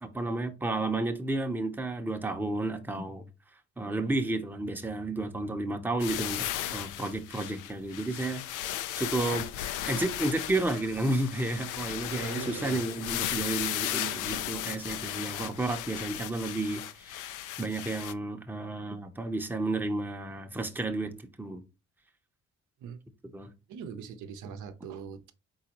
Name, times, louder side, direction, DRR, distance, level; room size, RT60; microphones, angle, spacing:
voice 1, 0.0-3.2 3.8-8.7 9.0-9.5 9.9-21.6 23.3-23.5, right 2 dB, 5° right, 0.6 m, -32 dB
sound 1, 6.0-18.1, left 12 dB, 85° left, 0.5 m, -35 dB
voice 2, 12.1-12.8 22.8-23.0 23.7-25.3, right 7 dB, 80° right, 0.7 m, -41 dB
4.1 x 3.9 x 2.9 m
cardioid pair, 90°, 30 cm